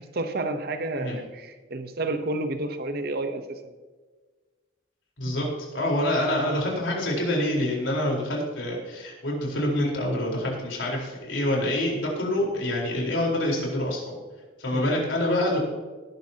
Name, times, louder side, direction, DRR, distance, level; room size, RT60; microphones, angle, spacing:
voice 1, 0.0-3.7 5.3-5.5 14.7-15.1, right 2 dB, 55° right, 8 dB, 0.9 m, -31 dB
voice 2, 5.2-14.1 14.6-15.6, left 1 dB, 75° left, -2 dB, 4.3 m, -26 dB
18.5 x 10.5 x 2.9 m, 1.3 s
head